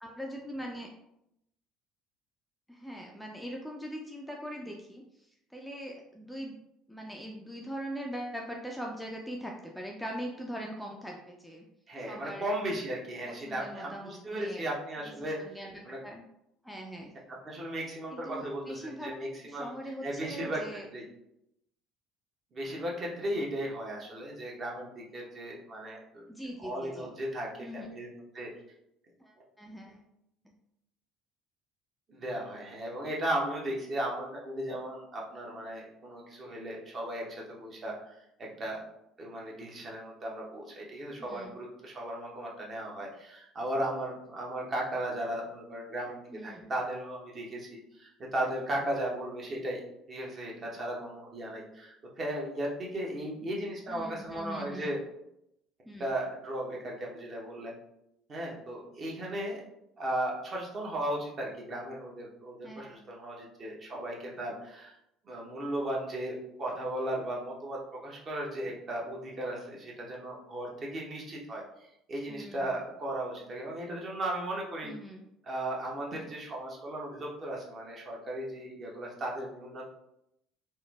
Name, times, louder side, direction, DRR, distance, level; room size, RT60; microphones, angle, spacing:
voice 1, 0.0-0.9 2.7-6.6 6.9-11.7 12.1-12.5 13.3-14.7 15.2-16.2 16.6-17.1 18.1-19.1 19.4-20.9 26.3-27.1 27.6-27.9 29.2-30.0 30.4-30.5 41.2-41.5 46.3-46.7 53.9-54.9 55.9-56.1 62.6-63.0 72.3-72.7 74.8-75.2, equal, ahead, -1 dB, 0.3 m, -41 dB
voice 2, 11.9-15.6 15.8-16.0 17.3-19.7 20.0-20.6 20.9-21.1 22.5-26.2 26.6-28.5 32.1-38.8 39.2-47.7 47.9-49.8 50.1-55.0 56.0-57.7 58.3-59.6 60.0-64.9 65.2-71.6 72.1-74.9 75.4-79.9, right 1 dB, 35° right, -2 dB, 0.7 m, -36 dB
3.0 x 2.0 x 2.2 m, 0.81 s
figure-of-eight pair, 60°, 0 cm